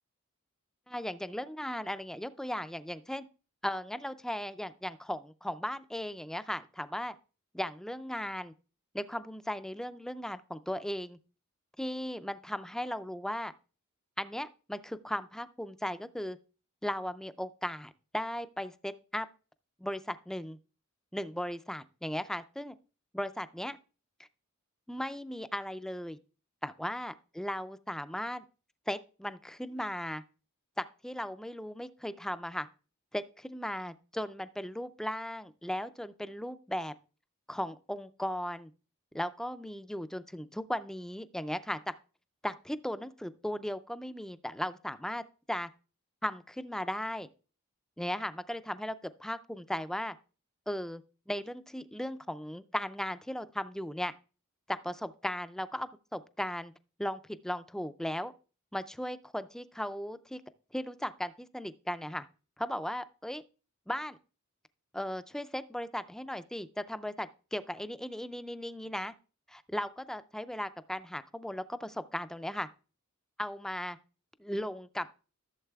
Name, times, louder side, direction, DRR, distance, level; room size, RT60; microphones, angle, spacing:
voice 1, 0.9-3.3 3.6-7.1 7.5-8.5 8.9-11.2 11.8-13.5 14.2-16.4 16.8-19.3 19.8-20.6 21.1-22.7 23.1-23.8 24.9-26.2 26.6-28.4 28.9-30.2 30.8-32.7 33.1-36.9 37.5-38.7 39.1-41.8 42.4-45.2 45.5-45.7 46.2-47.3 48.0-50.2 50.7-51.0 51.3-54.1 54.7-56.7 57.0-58.3 58.7-60.4 60.7-62.3 62.6-63.4 63.9-64.2 64.9-69.1 69.5-72.7 73.4-74.0 74.4-75.1, left 1 dB, ahead, 0.3 m, -37 dB
14.5 x 7.3 x 2.3 m
head